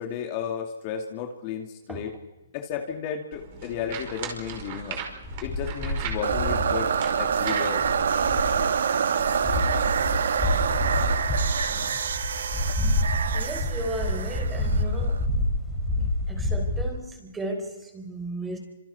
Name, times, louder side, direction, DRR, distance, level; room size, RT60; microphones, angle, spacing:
voice 1, 0.0-2.1 2.5-5.0 5.4-7.8, left 8 dB, 35° left, 3 dB, 2.4 m, -33 dB
sound 1, 3.3-8.6, right 7 dB, 40° right, 5.2 m, -39 dB
sound 2, 5.2-8.7 9.1-16.9, left 1 dB, 5° left, 4.7 m, -28 dB
sound 3, 6.2-15.2, right 7 dB, 70° right, 1.6 m, -26 dB
voice 2, 11.7-12.0 12.8-13.0 13.3-15.3 16.3-18.6, right 1 dB, 10° right, 4 dB, 4.1 m, -35 dB
28.0 x 27.0 x 4.3 m, 1.0 s
hypercardioid pair, 155°, 0 cm